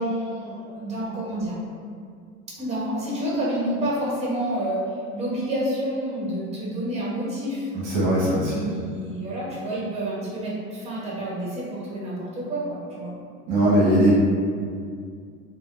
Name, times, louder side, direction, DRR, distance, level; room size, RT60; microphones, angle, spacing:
voice 1, 0.0-1.6 2.6-4.8 5.1-7.7 8.4-13.1, right 1 dB, 15° right, -6 dB, 1.0 m, -29 dB
voice 2, 7.7-8.7 13.5-14.2, right 1 dB, 40° right, -7 dB, 0.9 m, -20 dB
3.4 x 2.3 x 2.4 m, 2.2 s
hypercardioid pair, 95°, 39 cm